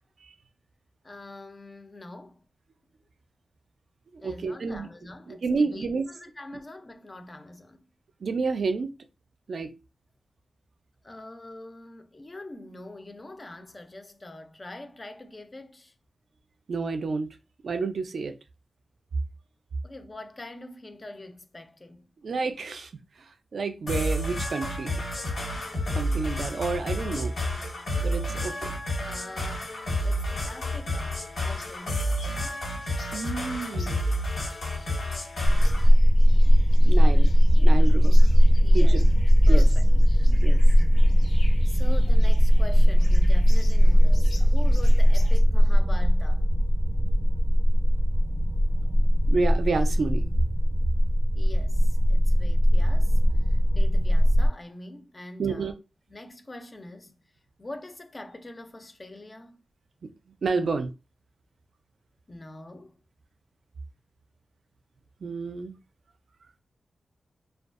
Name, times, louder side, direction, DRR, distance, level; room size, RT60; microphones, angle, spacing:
voice 1, 1.0-2.4 4.2-7.9 11.0-15.9 19.8-22.1 29.0-29.7 30.0-32.6 38.6-39.0 39.5-40.3 41.7-46.5 51.3-55.7 56.1-57.1 57.6-59.6 60.6-60.7 62.3-63.0, left 1 dB, 30° left, 0.4 m, -44 dB
voice 2, 4.2-4.9 5.3-6.0 8.2-8.9 9.5-9.7 16.7-17.3 17.6-18.3 22.2-22.9 23.5-25.0 25.9-27.3 27.6-27.7 28.0-28.7 33.1-34.0 36.8-37.3 37.6-38.2 38.7-39.0 39.5-39.7 40.3-40.6 49.3-50.3 55.4-55.7 60.0-60.1 60.4-60.9 65.2-65.8, right 4 dB, 70° right, 0.3 m, -29 dB
sound 1, 23.9-35.9, left 1 dB, 85° left, 1.3 m, -30 dB
sound 2, 31.6-45.4, left 2 dB, 65° left, 0.7 m, -51 dB
sound 3, 35.4-54.5, equal, 20° right, 0.6 m, -18 dB
2.6 x 2.2 x 2.4 m
wide cardioid pair, 110°, 0 cm